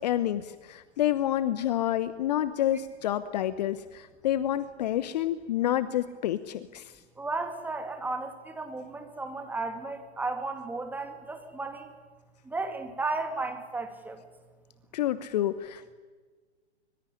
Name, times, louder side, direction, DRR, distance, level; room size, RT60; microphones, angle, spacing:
voice 1, 0.0-6.9 14.9-15.9, left 12 dB, 40° left, 15 dB, 1.0 m, -28 dB
voice 2, 7.2-11.9 12.4-14.2, right 3 dB, 5° right, 6 dB, 2.6 m, -34 dB
25.0 x 23.5 x 9.9 m, 1.4 s
figure-of-eight pair, 120°, 33 cm